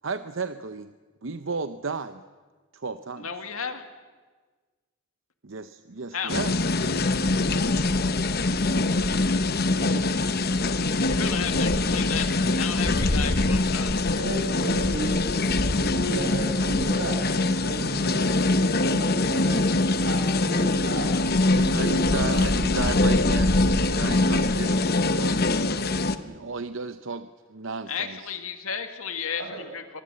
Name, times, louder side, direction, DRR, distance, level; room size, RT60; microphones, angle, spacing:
voice 1, 0.0-0.9 1.2-2.2 2.7-3.3 5.4-6.6 9.7-10.2 20.9-21.0 21.4-23.6 23.9-25.4 26.2-28.4, right 4 dB, 60° right, 11 dB, 0.7 m, -34 dB
voice 2, 3.2-3.8 6.1-6.3 11.1-14.0 27.9-30.0, left 7 dB, 80° left, 7 dB, 2.3 m, -33 dB
sound 1, 6.3-26.2, left 2 dB, 45° left, 1.0 m, -23 dB
voice 3, 14.2-15.2 15.7-19.7 20.0-21.1 21.5-22.8 29.4-29.6, right 2 dB, 90° right, 2 dB, 6.9 m, -33 dB
24.5 x 20.5 x 7.8 m, 1.4 s
head